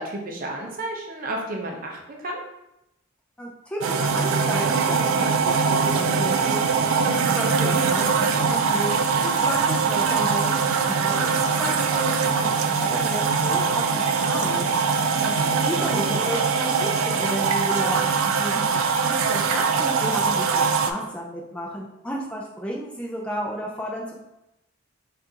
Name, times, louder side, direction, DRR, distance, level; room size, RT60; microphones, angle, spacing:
voice 1, 0.0-2.4 15.1-16.2, right 1 dB, 45° right, 0 dB, 0.6 m, -33 dB
voice 2, 3.4-8.9 9.2-10.6 10.8-14.7 15.6-24.2, equal, 5° left, -3 dB, 0.4 m, -33 dB
sound 1, 3.8-20.9, right 5 dB, 80° right, 0.3 m, -22 dB
4.8 x 2.5 x 2.8 m, 0.89 s
head